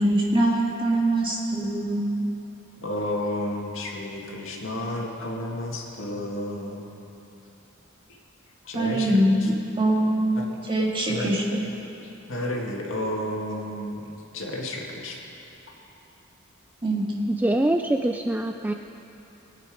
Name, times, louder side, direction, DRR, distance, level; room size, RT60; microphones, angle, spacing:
voice 1, 0.0-2.1 8.7-11.6 16.8-17.0, right 1 dB, 25° right, -4 dB, 2.4 m, -23 dB
voice 2, 2.8-6.9 8.6-9.5 10.4-10.5 11.1-11.3 12.3-15.2, left 1 dB, 80° left, -1 dB, 2.1 m, -31 dB
voice 3, 17.3-18.7, right 1 dB, 10° right, 5 dB, 0.3 m, -24 dB
22.5 x 9.2 x 5.0 m, 2.9 s
head